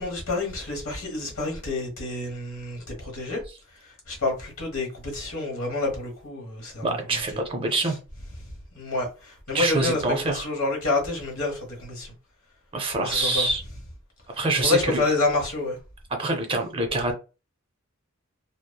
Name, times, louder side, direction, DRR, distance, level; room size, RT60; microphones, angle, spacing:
voice 1, 0.0-3.4 3.8-7.2 7.8-7.9 8.8-12.1 13.0-13.5 14.6-15.8, left 3 dB, 65° left, 1.2 m, -28 dB
voice 2, 6.8-8.0 9.5-10.5 12.7-13.6 14.3-15.0 16.2-17.1, right 2 dB, 25° right, 0.5 m, -25 dB
3.0 x 2.0 x 2.2 m
head